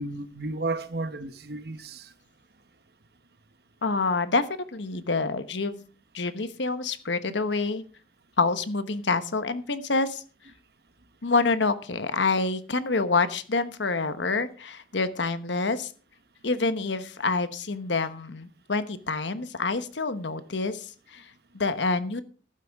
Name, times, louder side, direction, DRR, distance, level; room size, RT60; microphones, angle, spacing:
voice 1, 0.0-2.1, right 2 dB, 60° right, 1.1 m, -33 dB
voice 2, 3.8-5.8 6.1-7.8 8.4-10.2 11.2-15.9 16.4-22.2, left 3 dB, 80° left, 1.1 m, -27 dB
14.0 x 12.0 x 3.6 m
head